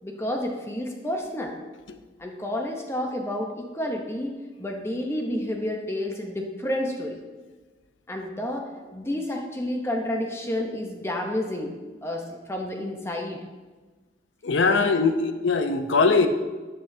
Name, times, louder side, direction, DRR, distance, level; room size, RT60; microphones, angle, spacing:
voice 1, 0.0-1.6 2.2-4.3 4.6-7.2 8.1-11.7 12.0-13.4 14.6-14.9, left 1 dB, 15° left, 2 dB, 0.7 m, -30 dB
voice 2, 14.4-16.3, left 4 dB, 85° left, 8 dB, 0.6 m, -21 dB
10.0 x 5.9 x 2.7 m, 1.3 s
head